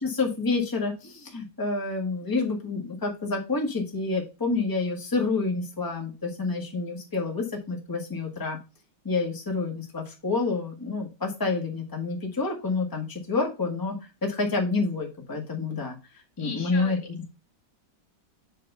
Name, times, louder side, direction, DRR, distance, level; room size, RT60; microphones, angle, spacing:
voice 1, 0.0-8.6 9.0-16.0 16.4-17.0, left 3 dB, 10° left, 0 dB, 1.4 m, -28 dB
voice 2, 16.4-17.3, left 4 dB, 85° left, 3 dB, 2.7 m, -39 dB
8.1 x 3.2 x 5.4 m, 0.29 s
omnidirectional pair, 2.1 m